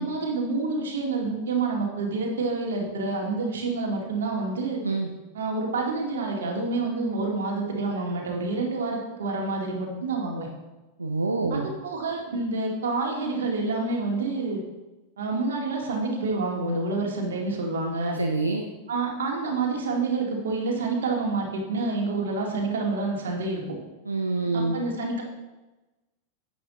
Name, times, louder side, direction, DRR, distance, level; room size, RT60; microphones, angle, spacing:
voice 1, 0.0-4.8 5.3-10.5 11.5-14.6 15.2-18.2 18.9-23.8 24.5-25.2, right 3 dB, 65° right, 0 dB, 2.4 m, -28 dB
voice 2, 11.0-11.7 18.1-18.6 24.0-24.8, right 3 dB, 80° right, 3 dB, 0.8 m, -26 dB
10.5 x 8.5 x 3.9 m, 1.1 s
figure-of-eight pair, 90°, 0 cm